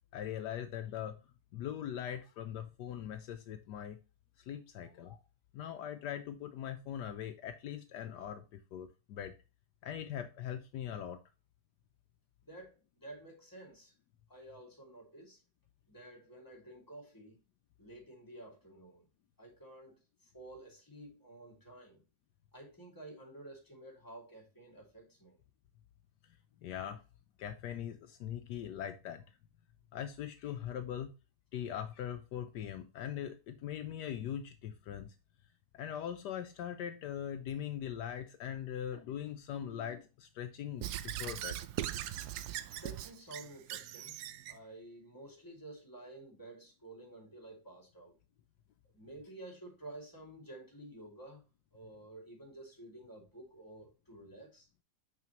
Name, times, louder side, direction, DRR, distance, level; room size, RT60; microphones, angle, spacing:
voice 1, 0.1-1.2 1.5-4.0 4.5-5.2 5.5-9.3 9.8-11.2 26.6-27.0 27.4-29.2 29.9-31.1 31.5-35.1 35.7-41.6, left 9 dB, 75° left, 1.2 m, -41 dB
voice 2, 12.4-13.9 14.3-15.4 15.9-17.4 17.8-19.1 19.4-20.0 20.2-22.0 22.5-25.4 42.7-44.2 44.5-48.2 48.9-51.4 51.7-54.7, right 1 dB, 10° left, 2.5 m, -51 dB
Squeak / Writing, 40.8-44.6, right 12 dB, 75° right, 1.1 m, -40 dB
5.8 x 5.8 x 3.0 m
omnidirectional pair, 1.9 m